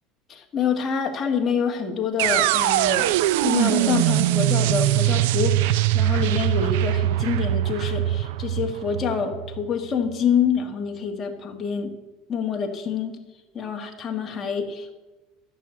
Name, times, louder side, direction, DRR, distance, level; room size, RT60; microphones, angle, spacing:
voice 1, 0.3-11.9 12.3-13.2 13.5-14.9, left 6 dB, 25° left, 2 dB, 1.7 m, -26 dB
sound 1, 2.2-10.1, right 15 dB, 85° right, 0.4 m, -22 dB
12.5 x 6.5 x 8.3 m, 1.1 s
cardioid pair, 155°, 0 cm